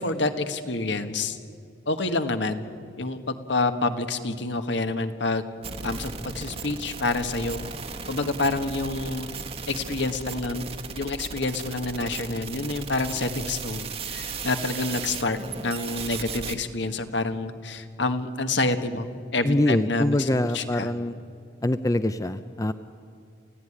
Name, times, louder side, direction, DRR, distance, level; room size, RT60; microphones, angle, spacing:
voice 1, 0.0-1.4 1.8-2.6 3.0-5.4 5.8-7.6 8.1-9.3 9.7-10.6 11.0-19.1 19.3-20.9, left 2 dB, 65° left, 8 dB, 1.6 m, -28 dB
sound 1, 5.6-16.6, right 4 dB, 30° right, 1.2 m, -36 dB
voice 2, 19.4-21.2 21.6-22.7, left 1 dB, 15° left, 11 dB, 0.5 m, -24 dB
28.5 x 16.5 x 10.0 m, 2.4 s
head